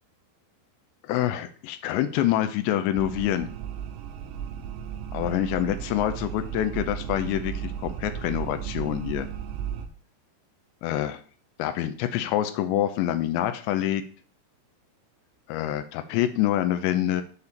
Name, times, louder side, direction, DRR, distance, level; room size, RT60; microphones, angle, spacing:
voice 1, 1.0-3.5 5.1-9.3 10.8-11.2 11.6-14.0 15.5-17.2, left 12 dB, 85° left, 9 dB, 2.8 m, -26 dB
sound 1, 3.0-9.9, right 8 dB, 80° right, 2.8 m, -35 dB
7.0 x 4.2 x 6.7 m, 0.41 s
omnidirectional pair, 5.1 m